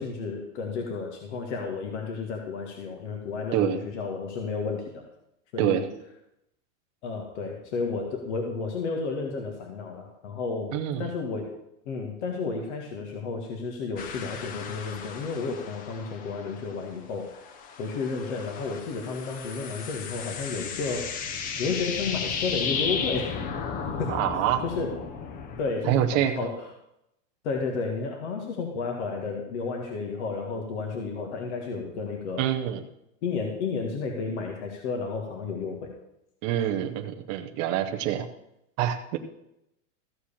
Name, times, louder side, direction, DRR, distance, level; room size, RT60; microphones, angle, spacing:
voice 1, 0.0-5.0 5.5-5.9 7.0-11.5 11.9-17.5 17.8-21.1 21.6-23.4 24.0-24.1 24.6-24.9 25.6-26.7 27.4-32.4 33.2-35.9, left 4 dB, 60° left, 1 dB, 2.0 m, -32 dB
voice 2, 3.5-3.8 5.6-5.9 10.7-11.1 24.1-24.6 25.9-26.3 32.4-32.8 36.4-38.3 38.8-39.2, right 11 dB, 20° right, 4 dB, 0.3 m, -26 dB
sound 1, 14.0-16.9 17.2-25.7, left 6 dB, 20° left, 0.6 m, -34 dB
14.5 x 4.8 x 7.0 m, 0.81 s
supercardioid pair, 155°, 38 cm